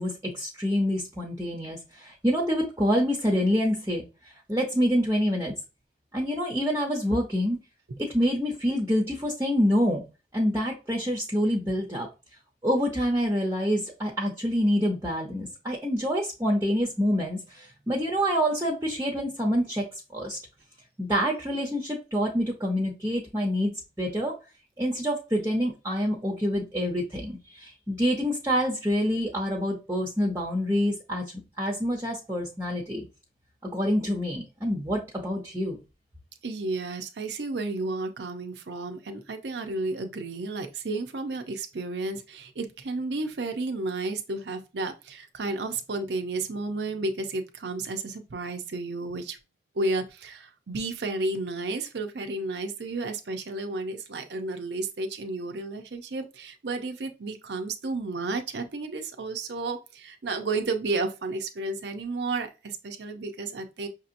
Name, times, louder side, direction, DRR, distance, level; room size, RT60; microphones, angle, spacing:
voice 1, 0.0-4.0 4.5-5.5 6.1-7.6 8.0-10.0 10.3-12.1 12.6-19.9 20.1-20.4 21.0-24.4 24.8-33.0 33.7-35.8, equal, 15° right, 0.6 m, -26 dB
voice 2, 36.4-49.4 49.7-63.9, right 3 dB, 80° right, 0.6 m, -32 dB
5.9 x 2.8 x 2.5 m
head